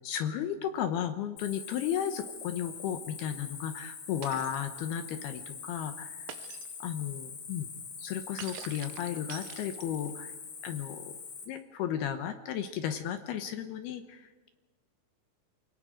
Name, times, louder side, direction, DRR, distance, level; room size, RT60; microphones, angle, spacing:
voice 1, 0.0-6.4 6.8-7.7 8.0-10.3 10.6-11.2 11.5-14.5, left 9 dB, 75° left, 8 dB, 2.3 m, -34 dB
Cricket, 1.4-11.4, left 5 dB, 50° left, 4.0 m, -44 dB
Shatter, 4.2-4.7 6.3-6.8 8.4-10.1, right 10 dB, 80° right, 3.6 m, -46 dB
28.0 x 19.0 x 5.1 m, 1.2 s
omnidirectional pair, 5.8 m